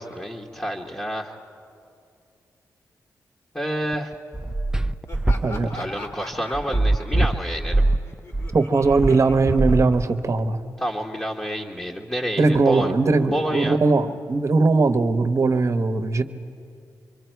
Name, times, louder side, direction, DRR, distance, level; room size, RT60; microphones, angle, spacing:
voice 1, 0.0-1.3 3.5-4.1 5.7-7.8 10.8-12.9 13.3-13.8, equal, 15° left, -1 dB, 1.4 m, -28 dB
sound 1, 4.1-10.4, right 2 dB, 10° right, 0.6 m, -22 dB
Laughter, 5.1-10.5, left 1 dB, 50° left, 2.6 m, -42 dB
voice 2, 8.5-10.6 12.4-16.2, right 3 dB, 50° right, 8 dB, 1.0 m, -20 dB
26.5 x 23.0 x 4.6 m, 2.5 s
cardioid pair, 60°, 7 cm